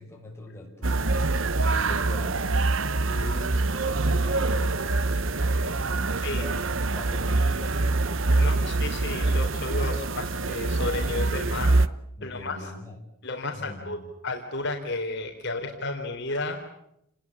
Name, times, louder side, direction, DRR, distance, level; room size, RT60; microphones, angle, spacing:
voice 1, 0.0-2.6 3.0-8.7 12.2-13.0 13.5-14.1, left 1 dB, 10° left, -1 dB, 6.5 m, -43 dB
sound 1, 0.8-11.9, right 2 dB, 60° right, 1.0 m, -25 dB
voice 2, 8.4-11.8 12.2-12.7 13.2-16.6, left 2 dB, 50° left, 2 dB, 3.8 m, -32 dB
29.5 x 20.5 x 8.6 m, 0.78 s
head